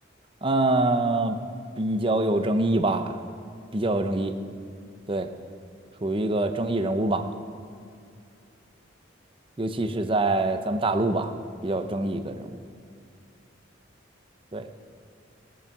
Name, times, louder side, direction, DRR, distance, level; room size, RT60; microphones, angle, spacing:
voice 1, 0.4-1.4 1.8-3.2 3.7-4.3 5.1-5.3 6.0-7.3 9.6-11.3 11.6-12.6 14.5-14.7, right 2 dB, 25° right, 8 dB, 0.7 m, -25 dB
21.0 x 7.1 x 6.0 m, 2.4 s
head